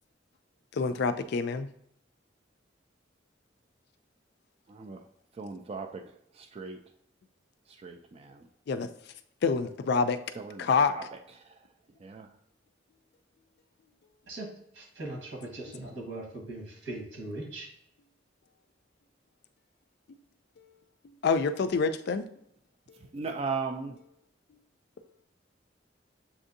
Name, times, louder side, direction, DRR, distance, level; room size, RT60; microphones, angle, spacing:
voice 1, 0.7-1.7 8.7-8.9 9.4-10.2 10.6-10.9 21.2-22.3, left 5 dB, 60° left, 0.4 m, -26 dB
voice 2, 4.7-5.0 5.4-6.0 6.4-6.8 7.8-8.5 10.4-10.7 10.9-11.0 12.0-12.3 23.1-24.0, right 4 dB, 35° right, 0.3 m, -37 dB
voice 3, 14.7-17.7, right 2 dB, 90° right, 1.4 m, -40 dB
7.0 x 2.6 x 2.6 m
head